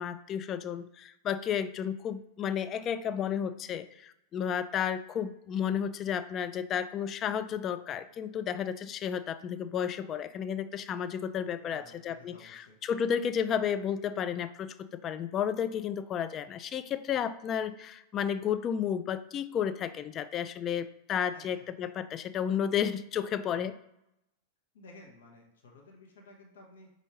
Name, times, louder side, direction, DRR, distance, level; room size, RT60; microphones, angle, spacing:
voice 1, 0.0-23.8, left 8 dB, 30° left, 12 dB, 0.3 m, -32 dB
voice 2, 11.6-12.8 21.3-21.6 23.5-23.6 24.7-26.9, left 2 dB, 60° left, 0 dB, 1.1 m, -54 dB
5.4 x 2.7 x 3.0 m, 0.84 s
figure-of-eight pair, 90°, 0 cm